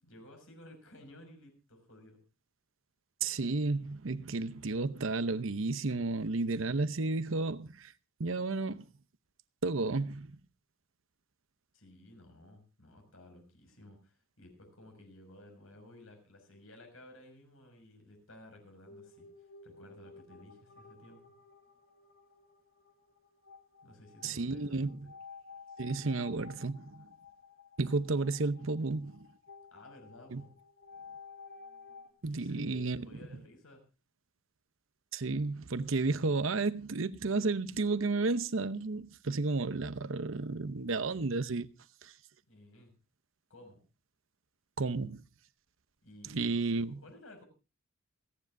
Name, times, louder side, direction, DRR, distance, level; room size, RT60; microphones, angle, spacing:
voice 1, 0.0-2.2 11.7-21.2 23.8-24.9 29.7-30.5 32.3-33.8 42.5-42.9 43.5-43.8 46.0-47.4, left 1 dB, 80° left, 6.1 m, -55 dB
voice 2, 3.2-7.9 8.2-8.9 9.6-10.4 24.2-25.1 25.8-27.1 27.8-29.3 30.3-30.4 32.2-33.1 35.1-41.7 42.0-42.1 44.8-45.2 46.3-47.0, right 3 dB, 70° right, 0.8 m, -32 dB
sound 1, 18.9-32.1, left 5 dB, 60° left, 3.0 m, -53 dB
28.5 x 9.8 x 2.6 m
head